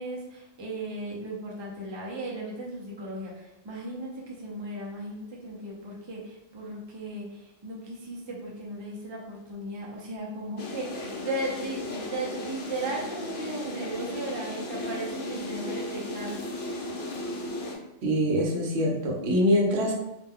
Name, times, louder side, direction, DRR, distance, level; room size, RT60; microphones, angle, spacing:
voice 1, 0.0-16.4, right 1 dB, 45° right, -3 dB, 0.3 m, -36 dB
sound 1, 10.6-17.8, left 1 dB, 65° left, 0.8 m, -35 dB
voice 2, 18.0-19.9, equal, 60° right, -1 dB, 0.9 m, -24 dB
2.4 x 2.2 x 3.4 m, 0.91 s
omnidirectional pair, 1.3 m